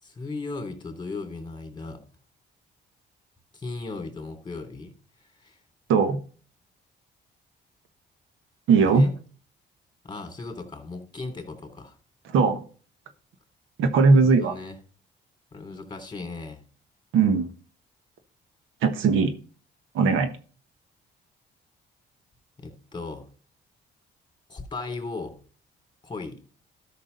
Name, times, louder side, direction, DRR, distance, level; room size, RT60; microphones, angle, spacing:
voice 1, 0.0-2.0 3.5-4.9 5.2-5.6 8.8-9.1 10.0-12.0 14.1-14.8 15.5-16.6 22.6-23.3 24.5-25.4 26.0-26.4, left 3 dB, 20° left, 5 dB, 3.1 m, -37 dB
voice 2, 5.9-6.2 8.7-9.1 12.3-12.6 13.8-14.5 17.1-17.4 18.8-19.3 19.9-20.3, right 4 dB, 85° right, 8 dB, 1.3 m, -19 dB
12.5 x 6.2 x 4.0 m, 0.40 s
cardioid pair, 90°, 20 cm